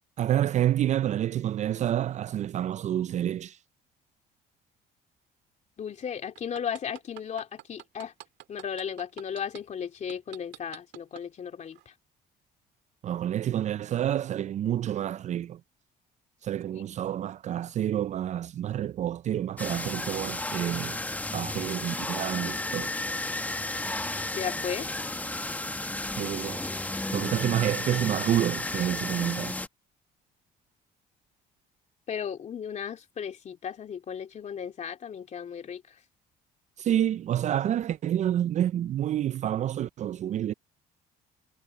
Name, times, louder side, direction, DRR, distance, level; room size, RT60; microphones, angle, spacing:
voice 1, 0.2-3.6 13.0-15.6 16.4-21.0 21.3-22.9 26.1-26.6 27.1-29.5 36.8-40.5, right 11 dB, 45° right, 0.4 m, -28 dB
voice 2, 5.8-8.1 8.5-11.8 16.7-16.8 24.3-24.9 32.1-35.8, left 8 dB, 45° left, 3.0 m, -35 dB
sound 1, 6.4-9.6 10.1-11.2 11.7-11.8, right 16 dB, 90° right, 2.7 m, -45 dB
sound 2, 19.6-29.7, left 2 dB, 10° left, 1.2 m, -33 dB
cardioid pair, 110°, 17 cm